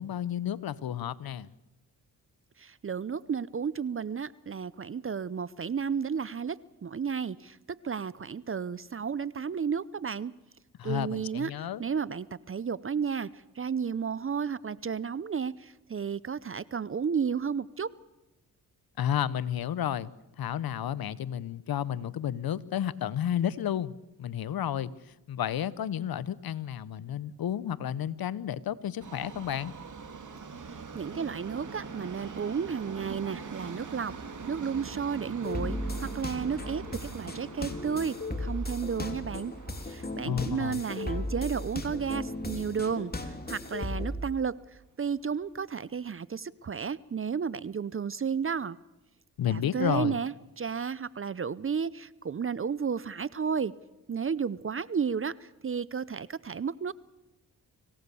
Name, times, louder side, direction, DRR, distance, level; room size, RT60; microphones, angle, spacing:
voice 1, 0.0-1.5 10.8-11.8 19.0-20.1 20.4-23.9 24.2-24.9 25.3-29.7 40.2-40.8 49.4-50.1, left 10 dB, 70° left, 18 dB, 1.0 m, -31 dB
voice 2, 2.6-10.3 10.8-11.5 11.8-13.3 13.6-17.9 30.6-34.1 34.5-39.5 39.8-44.5 45.0-48.8 49.5-53.7 54.1-56.9, right 6 dB, 35° right, 19 dB, 0.7 m, -32 dB
Subway metro underground, 29.0-43.1 43.4-43.5 44.4-44.5 44.7-44.8 45.5-45.6, right 5 dB, 50° right, 2.8 m, -44 dB
sound 1, 35.4-44.2, left 1 dB, 25° left, 3.3 m, -36 dB
26.5 x 17.0 x 7.0 m, 0.97 s
cardioid pair, 60°, 37 cm